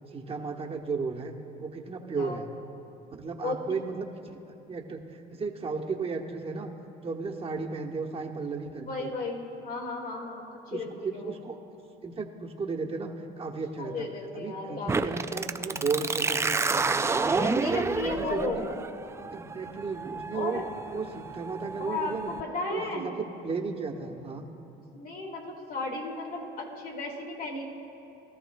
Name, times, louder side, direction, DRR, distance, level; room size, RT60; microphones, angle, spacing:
voice 1, 0.1-2.5 3.2-4.1 4.7-5.0 5.3-6.7 7.0-9.1 10.7-11.6 12.0-14.1 14.3-17.1 17.5-18.6 19.3-20.6 20.9-22.3 22.7-24.5, right 4 dB, 30° right, 1 dB, 1.1 m, -34 dB
voice 2, 2.2-2.5 3.4-3.7 8.8-11.4 13.8-15.7 17.4-18.7 20.3-20.6 21.8-23.1 24.9-27.6, left 3 dB, 50° left, 0 dB, 2.0 m, -35 dB
sound 1, 14.9-22.4, right 4 dB, 15° right, 0.3 m, -30 dB
20.5 x 13.5 x 2.2 m, 2.9 s
cardioid pair, 110°, 19 cm